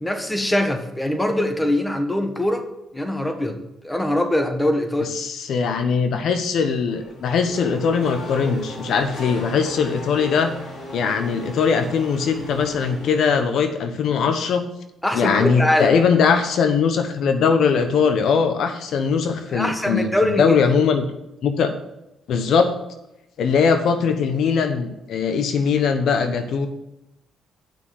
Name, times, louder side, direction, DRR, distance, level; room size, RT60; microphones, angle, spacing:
voice 1, 0.0-2.7 2.9-3.6 3.8-5.1 15.0-15.9 19.5-20.6, left 1 dB, 10° left, 5 dB, 1.5 m, -22 dB
voice 2, 5.0-10.5 10.9-14.7 15.1-21.1 21.4-21.7 22.3-22.7 23.4-26.7, left 6 dB, 70° left, 8 dB, 1.0 m, -20 dB
Race car auto racing / Accelerating revving vroom, 6.9-13.6, left 1 dB, 50° left, 4.4 m, -36 dB
8.8 x 6.0 x 7.8 m, 0.88 s
cardioid pair, 90°, 0 cm